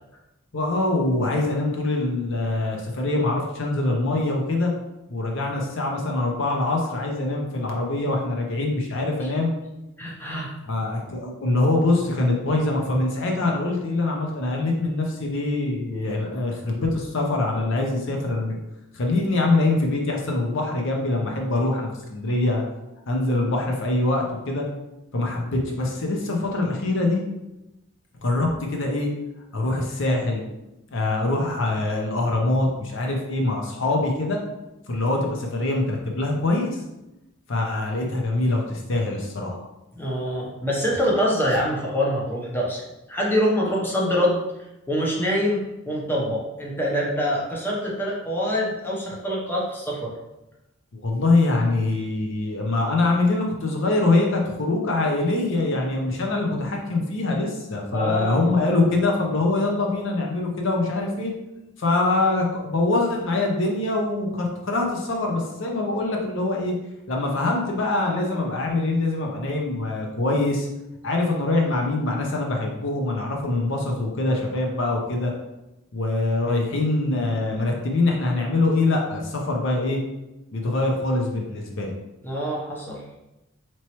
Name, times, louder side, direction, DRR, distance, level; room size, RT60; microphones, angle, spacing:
voice 1, 0.5-4.7 5.1-9.5 10.7-18.6 18.9-22.7 23.1-24.6 25.1-27.2 28.2-29.1 29.5-30.4 30.9-34.4 34.9-36.8 37.5-39.6 50.9-61.3 61.8-66.7 67.1-70.7 71.0-75.3 75.9-80.0 80.5-81.9, left 2 dB, 60° left, 1 dB, 0.7 m, -24 dB
voice 2, 10.0-10.5 40.0-42.8 43.1-44.4 44.9-50.1 57.9-58.6 82.2-83.0, equal, 10° left, -4 dB, 0.8 m, -25 dB
4.4 x 3.0 x 3.0 m, 0.94 s
head